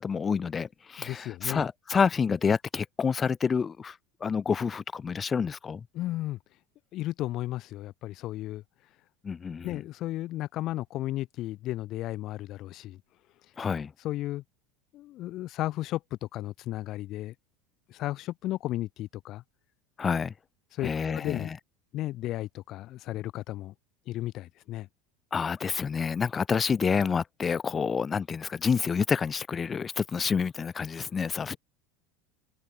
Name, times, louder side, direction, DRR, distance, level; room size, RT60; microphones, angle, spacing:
voice 1, 0.0-4.0 4.2-5.8 9.2-9.8 13.6-13.9 20.0-20.3 20.8-21.6 25.3-31.6, left 6 dB, 25° left, 0.6 m, -28 dB
voice 2, 1.0-1.6 5.9-6.4 6.9-8.6 9.6-13.0 14.0-14.4 14.9-17.3 17.9-19.4 20.7-21.5 21.9-23.7 24.1-24.9, left 15 dB, 55° left, 3.4 m, -34 dB
hypercardioid pair, 90°, 0 cm